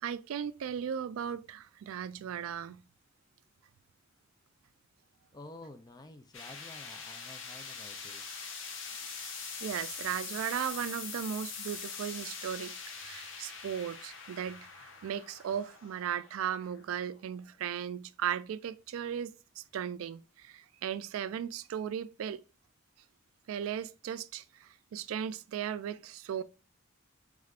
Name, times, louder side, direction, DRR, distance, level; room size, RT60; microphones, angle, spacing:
voice 1, 0.0-2.8 9.1-9.2 9.6-14.7 15.0-22.4 23.5-26.4, right 9 dB, 90° right, 0.3 m, -37 dB
voice 2, 5.3-8.3, left 2 dB, 20° left, 0.4 m, -50 dB
sound 1, 6.3-17.5, left 5 dB, 70° left, 0.7 m, -43 dB
3.6 x 3.3 x 2.4 m
head